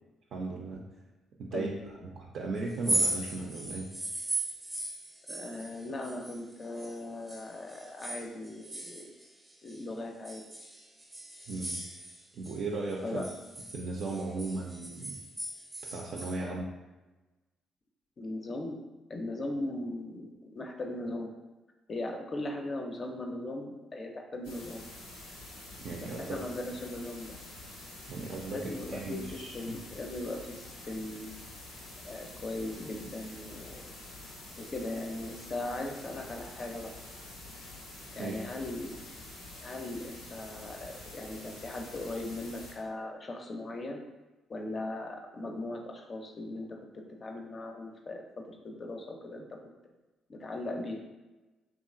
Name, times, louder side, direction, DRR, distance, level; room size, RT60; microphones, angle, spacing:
voice 1, 0.3-0.8 1.4-1.7 2.0-3.9 11.5-11.8 12.3-13.2 13.7-15.2 15.9-16.7 25.8-26.4 28.1-29.5 38.2-38.4, right 3 dB, 65° right, -2 dB, 0.3 m, -36 dB
sound 1, 2.7-7.0 7.3-9.8 10.2-12.6 12.9-16.4, right 1 dB, 15° right, 0.6 m, -37 dB
voice 2, 5.3-9.1 9.6-10.4 13.0-13.3 16.4-16.6 18.2-21.3 21.9-24.8 26.0-27.4 28.5-31.3 32.0-33.9 34.6-36.9 38.1-39.0 39.6-44.0 44.5-49.6 50.3-51.0, left 2 dB, 40° left, 2 dB, 0.4 m, -38 dB
sound 2, 24.4-42.7, left 2 dB, 90° left, 0.6 m, -47 dB
2.8 x 2.3 x 2.4 m, 1.1 s
hypercardioid pair, 50°, 0 cm